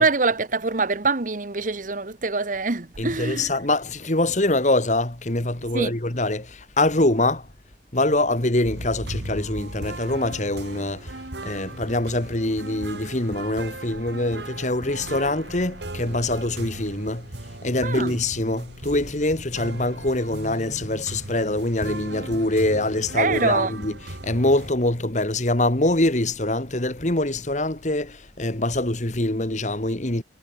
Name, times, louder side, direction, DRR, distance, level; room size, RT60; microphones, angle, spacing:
voice 1, 0.0-3.5 5.7-5.9 17.8-18.1 23.2-23.7, right 3 dB, 50° right, 1.2 m, -24 dB
voice 2, 3.0-7.5 7.9-17.3 17.6-30.2, left 2 dB, 45° left, 2.3 m, -24 dB
sound 1, 8.6-24.7, right 1 dB, 75° right, 3.1 m, -37 dB
head